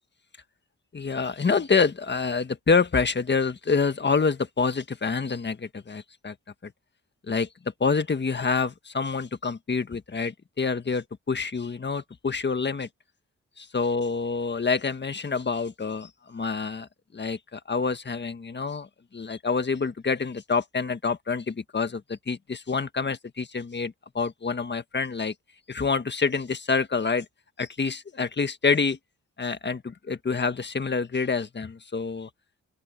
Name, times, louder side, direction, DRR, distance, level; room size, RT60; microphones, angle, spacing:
voice 1, 0.9-6.3 6.6-6.7 7.3-7.5 7.8-12.9 13.6-16.9 17.1-18.9 19.1-25.3 25.7-27.2 27.6-29.0 29.4-32.3, left 4 dB, 35° left, 1.6 m, -27 dB
open air
cardioid pair, 75°, 31 cm